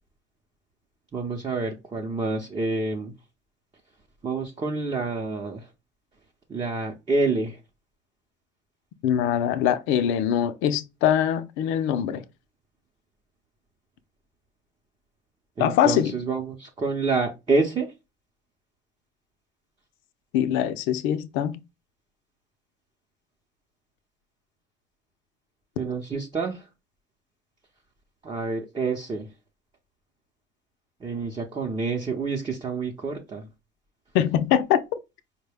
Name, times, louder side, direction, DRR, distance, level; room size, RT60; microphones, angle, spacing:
voice 1, 1.1-3.1 4.2-5.7 6.5-7.6 15.6-17.9 25.8-26.6 28.2-29.3 31.0-33.5, right 3 dB, 25° right, 0.7 m, -28 dB
voice 2, 9.0-12.2 15.6-16.1 20.3-21.6 34.1-34.8, left 10 dB, 80° left, 0.5 m, -23 dB
4.6 x 2.2 x 3.4 m
cardioid pair, 110°, 20 cm